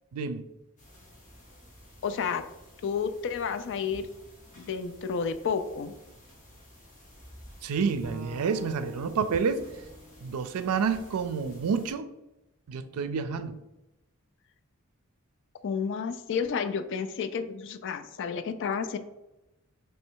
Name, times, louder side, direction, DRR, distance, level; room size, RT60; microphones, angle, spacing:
voice 1, 0.1-0.4 7.6-9.6 10.2-12.1 12.7-13.6, right 5 dB, 85° right, 11 dB, 0.4 m, -29 dB
sound 1, 0.8-11.9, equal, 35° left, 1.3 m, -53 dB
voice 2, 2.0-2.4 2.8-4.1 4.6-5.9 15.6-19.0, left 6 dB, 60° left, 10 dB, 0.4 m, -31 dB
Bowed string instrument, 8.0-11.3, equal, 5° right, 0.6 m, -46 dB
3.2 x 3.2 x 4.5 m, 0.95 s
head